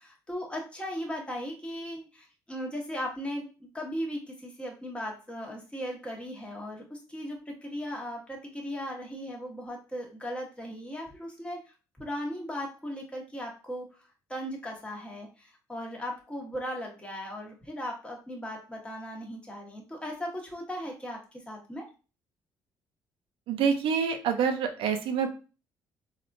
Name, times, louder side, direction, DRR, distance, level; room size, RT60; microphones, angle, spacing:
voice 1, 0.0-11.6 12.0-14.0 14.3-21.8, equal, 10° left, -1 dB, 1.1 m, -37 dB
voice 2, 23.5-25.3, right 6 dB, 70° right, 7 dB, 0.5 m, -26 dB
3.4 x 2.4 x 2.5 m, 0.34 s
supercardioid pair, 60°, 9 cm